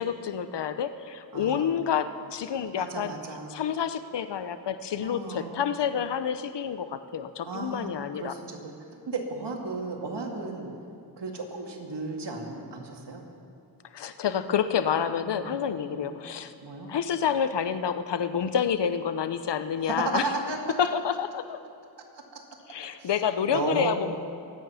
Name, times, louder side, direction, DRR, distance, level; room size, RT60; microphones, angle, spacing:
voice 1, 0.0-3.1 3.5-8.3 13.9-16.5 16.9-20.3 20.8-21.6 22.7-24.2, left 8 dB, 80° left, 11 dB, 0.8 m, -28 dB
voice 2, 1.3-1.8 2.7-3.5 5.0-5.7 7.4-8.7 9.1-10.7 11.2-13.2 15.3-15.5 15.9-16.1 16.6-16.9 19.8-20.6 22.1-22.4 23.0-23.1 23.5-24.0, right 3 dB, 75° right, 1 dB, 2.4 m, -34 dB
24.0 x 9.3 x 5.8 m, 2.5 s
cardioid pair, 60°, 41 cm